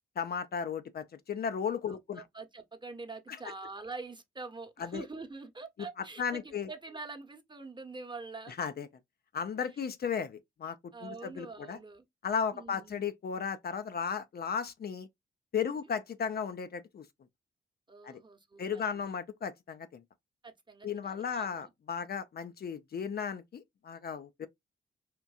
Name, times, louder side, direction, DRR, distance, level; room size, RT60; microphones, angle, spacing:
voice 1, 0.2-2.2 4.8-5.0 6.2-6.7 8.6-8.9 9.3-10.8 11.0-11.8 12.2-15.1 15.5-17.0 18.0-18.2 18.6-20.0 20.8-24.5, left 6 dB, 50° left, 0.6 m, -35 dB
voice 2, 1.9-8.5 9.6-9.8 10.9-12.0 12.5-13.0 15.7-15.9 17.9-19.1 20.4-21.7, right 3 dB, 20° right, 1.0 m, -45 dB
4.4 x 2.5 x 2.3 m
hypercardioid pair, 45°, 20 cm